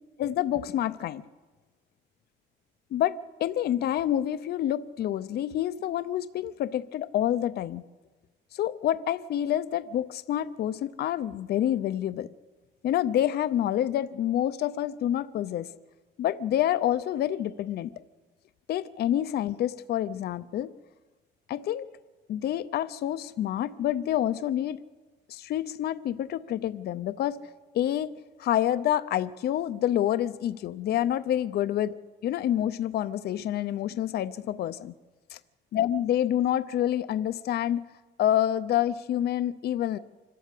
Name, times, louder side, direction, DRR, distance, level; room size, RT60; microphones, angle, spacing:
voice 1, 0.2-1.2 2.9-7.8 8.5-12.3 12.8-15.7 16.2-17.9 18.7-20.7 21.5-21.9 22.3-24.8 25.3-27.4 27.7-28.1 28.4-31.9 32.2-34.9 35.3-35.4 35.7-37.8 38.2-40.0, left 11 dB, 55° left, 14 dB, 0.6 m, -27 dB
26.0 x 12.5 x 8.2 m, 1.3 s
cardioid pair, 170°, 20 cm